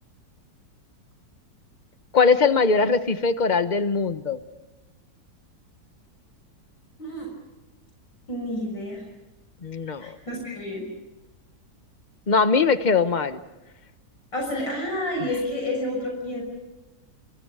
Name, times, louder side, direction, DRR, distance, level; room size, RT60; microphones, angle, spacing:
voice 1, 2.1-4.4 9.6-10.1 12.3-13.4, left 4 dB, 30° left, 10 dB, 1.1 m, -21 dB
voice 2, 8.3-9.0 10.0-10.9 14.3-16.4, left 1 dB, 80° left, 0 dB, 7.1 m, -29 dB
28.5 x 27.0 x 5.0 m, 1.0 s
omnidirectional pair, 2.0 m